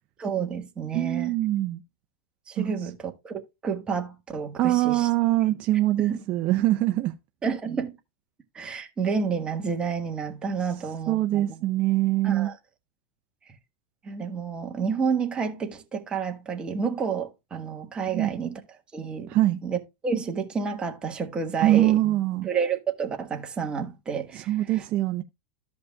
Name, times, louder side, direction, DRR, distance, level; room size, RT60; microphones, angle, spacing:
voice 1, 0.2-1.3 2.5-5.1 6.1-6.2 7.4-7.9 8.5-11.6 12.2-12.6 14.0-18.6 18.9-19.4 19.6-22.0 22.4-24.8, right 6 dB, 20° right, 1.4 m, -30 dB
voice 2, 0.9-1.8 2.6-2.7 4.6-7.1 11.1-12.5 18.1-18.3 19.3-19.6 21.6-22.5 24.3-25.2, right 15 dB, 40° right, 0.5 m, -23 dB
14.0 x 5.3 x 2.3 m
supercardioid pair, 135°, 5 cm